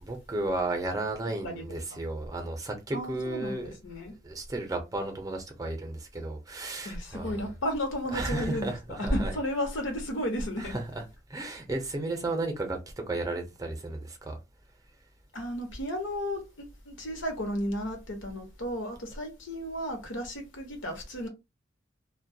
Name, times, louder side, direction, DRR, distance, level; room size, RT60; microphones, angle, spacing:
voice 1, 0.0-3.8 4.2-7.4 8.1-9.4 10.6-11.0 11.3-12.8 13.1-14.4, right 2 dB, 20° right, 0.5 m, -33 dB
voice 2, 2.9-4.1 6.8-10.8 15.3-21.3, equal, 80° left, 0.8 m, -33 dB
2.2 x 2.2 x 2.6 m
head